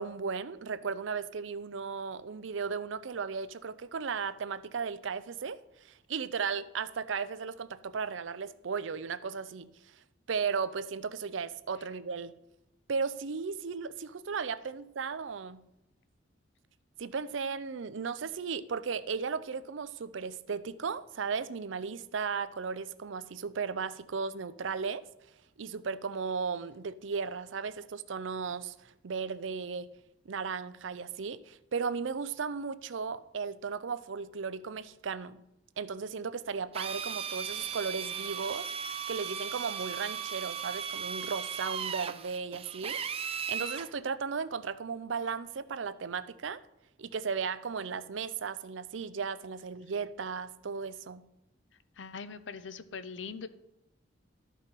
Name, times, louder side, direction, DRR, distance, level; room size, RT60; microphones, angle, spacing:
voice 1, 0.0-9.7 10.3-12.3 12.9-15.6 17.0-25.0 25.6-29.9 30.3-35.4 35.8-43.0 43.5-46.6 47.0-51.2, right 5 dB, 75° right, 0.5 m, -35 dB
Drill, 36.7-43.9, right 7 dB, 30° right, 0.5 m, -37 dB
voice 2, 52.0-53.5, left 5 dB, 70° left, 0.7 m, -41 dB
12.5 x 5.5 x 5.6 m
head